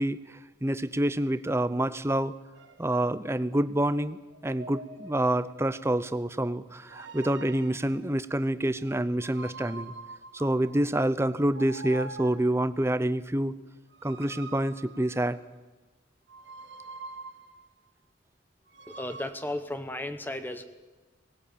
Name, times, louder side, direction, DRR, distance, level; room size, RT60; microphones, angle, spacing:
voice 1, 0.0-2.3 2.8-9.9 10.3-13.5 14.0-15.4, right 1 dB, 15° right, 14 dB, 0.6 m, -27 dB
sound 1, 2.6-2.9 4.3-5.9 6.8-8.0 9.2-10.9 11.5-12.7 13.9-15.5 16.3-17.7 18.7-19.3, right 3 dB, 65° right, 1.6 m, -45 dB
voice 2, 18.9-20.6, left 1 dB, 10° left, 9 dB, 1.0 m, -34 dB
18.5 x 17.5 x 8.7 m, 1.2 s
head